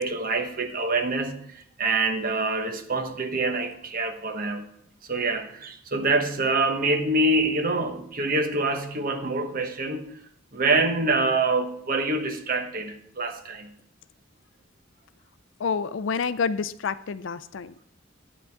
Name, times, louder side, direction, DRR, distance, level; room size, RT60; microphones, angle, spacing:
voice 1, 0.0-4.7 5.0-10.1 10.5-13.7, right 2 dB, 45° right, 6 dB, 1.1 m, -26 dB
voice 2, 15.6-17.9, left 5 dB, 65° left, 15 dB, 0.4 m, -28 dB
12.0 x 9.0 x 3.5 m, 0.71 s
head